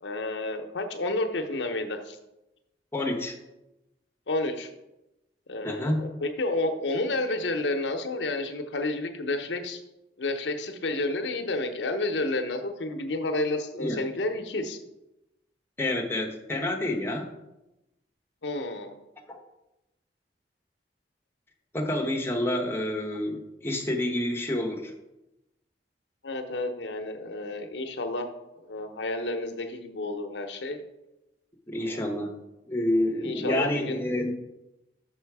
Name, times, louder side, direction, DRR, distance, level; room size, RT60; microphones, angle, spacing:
voice 1, 0.0-2.2 4.3-4.7 5.5-9.8 10.2-14.8 18.4-18.9 26.2-28.3 28.6-30.8 31.9-32.0 33.2-34.0, left 2 dB, 85° left, 6 dB, 0.8 m, -30 dB
voice 2, 2.9-3.4 5.6-6.0 13.7-14.0 15.8-17.3 19.3-19.4 21.7-24.9 31.7-32.4 32.7-34.3, left 1 dB, 15° left, 0 dB, 1.0 m, -28 dB
6.2 x 5.6 x 4.7 m, 0.94 s
head